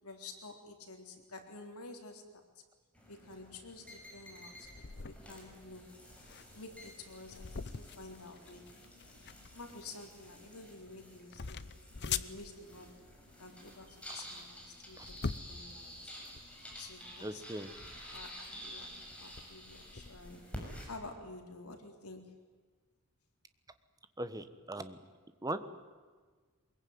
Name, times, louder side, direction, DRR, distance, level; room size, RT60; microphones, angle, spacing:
voice 1, 0.0-2.6 3.1-4.7 5.0-6.0 6.5-8.7 9.5-11.6 12.0-13.0 13.4-16.1 16.8-17.4 18.1-20.5 20.9-22.3, left 3 dB, 80° left, 4 dB, 3.8 m, -50 dB
sound 1, 2.9-20.9, equal, 5° left, 6.7 m, -51 dB
sound 2, 4.6-20.4, left 6 dB, 50° left, 0.8 m, -45 dB
voice 2, 17.2-17.7 24.2-25.0 25.4-25.6, right 1 dB, 15° right, 11 dB, 1.3 m, -39 dB
23.5 x 22.0 x 9.6 m, 1.5 s
head